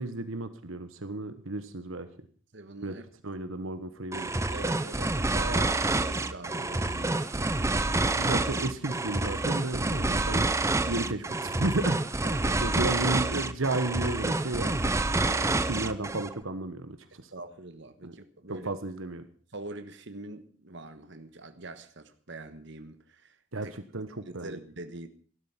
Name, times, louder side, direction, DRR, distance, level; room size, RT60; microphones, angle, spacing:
voice 1, 0.0-2.1 2.8-2.9 3.2-4.3 5.4-5.5 8.0-10.5 10.8-12.0 12.6-14.9 15.2-17.3 18.0-18.1 18.6-19.2 23.5-24.6, right 2 dB, 75° right, 1.3 m, -33 dB
voice 2, 2.5-3.0 4.5-8.0 12.2-12.8 17.3-18.7 19.5-23.4 23.6-23.7 24.2-25.1, right 2 dB, 60° right, 1.4 m, -43 dB
sound 1, 4.1-16.3, right 2 dB, 15° right, 0.6 m, -28 dB
14.5 x 12.5 x 5.8 m
head